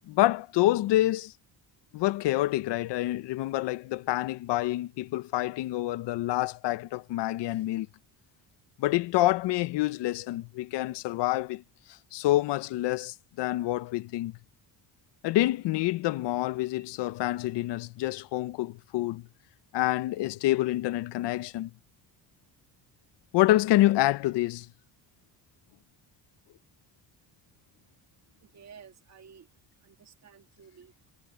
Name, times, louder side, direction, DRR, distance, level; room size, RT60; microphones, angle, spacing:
voice 1, 0.1-1.3 1.9-7.9 8.8-11.6 12.1-14.4 15.2-19.3 19.7-21.7 23.3-24.7, left 16 dB, 90° left, 0.8 m, -27 dB
voice 2, 28.4-29.5 29.8-30.9, right 7 dB, 40° right, 2.1 m, -53 dB
cardioid pair, 165°, 41 cm